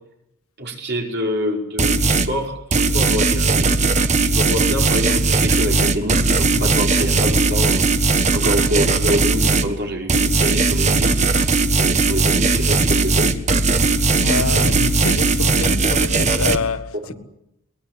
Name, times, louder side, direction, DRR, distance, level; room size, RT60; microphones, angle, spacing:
voice 1, 0.6-3.8 4.2-7.8 8.3-11.3 11.7-13.3 17.0-17.2, equal, 50° right, 5.2 m, -26 dB
sound 1, 1.8-2.3 2.7-9.7 10.1-16.6, right 3 dB, 30° right, 1.4 m, -18 dB
voice 2, 14.2-17.1, left 3 dB, 75° left, 1.3 m, -26 dB
23.5 x 20.5 x 9.4 m
head